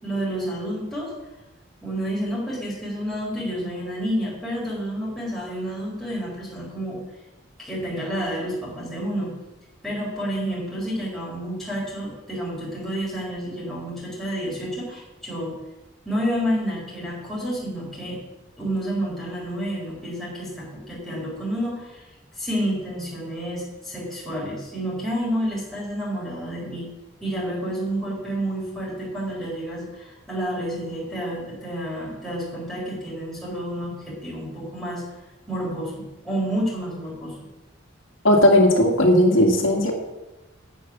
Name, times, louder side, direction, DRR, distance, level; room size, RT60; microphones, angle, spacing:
voice 1, 0.0-1.1 1.8-7.0 7.6-9.3 9.8-15.6 16.0-18.2 18.6-22.1 22.4-26.9 27.2-35.0 35.5-37.3, equal, ahead, -7 dB, 3.7 m, -29 dB
voice 2, 38.2-39.9, left 1 dB, 75° left, 2 dB, 2.0 m, -16 dB
9.5 x 8.6 x 6.0 m, 1.0 s
head